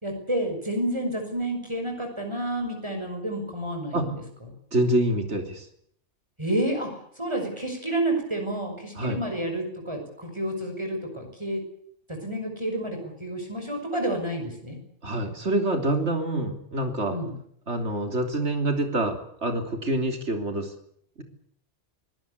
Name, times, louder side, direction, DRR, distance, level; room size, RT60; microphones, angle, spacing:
voice 1, 0.0-4.1 6.4-11.6 12.1-14.8 17.1-17.3, right 1 dB, 25° right, 2 dB, 6.0 m, -30 dB
voice 2, 4.7-5.7 9.0-9.2 15.0-17.2 17.7-20.7, right 1 dB, 75° right, 6 dB, 3.7 m, -26 dB
24.0 x 18.0 x 8.3 m, 0.67 s
omnidirectional pair, 1.2 m